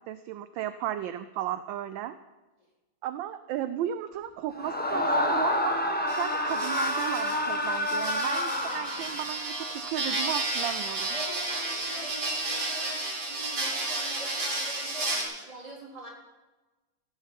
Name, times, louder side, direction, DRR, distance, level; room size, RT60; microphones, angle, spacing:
voice 1, 0.1-2.2 3.0-5.8 6.2-11.1, right 11 dB, 75° right, 12 dB, 1.2 m, -34 dB
Screaming, 4.5-9.4, left 1 dB, 5° left, 1.0 m, -28 dB
sound 1, 6.1-15.2, right 2 dB, 40° right, 3.1 m, -32 dB
voice 2, 11.1-16.1, right 1 dB, 15° right, -3 dB, 3.5 m, -44 dB
15.5 x 6.4 x 8.7 m, 1.2 s
omnidirectional pair, 2.3 m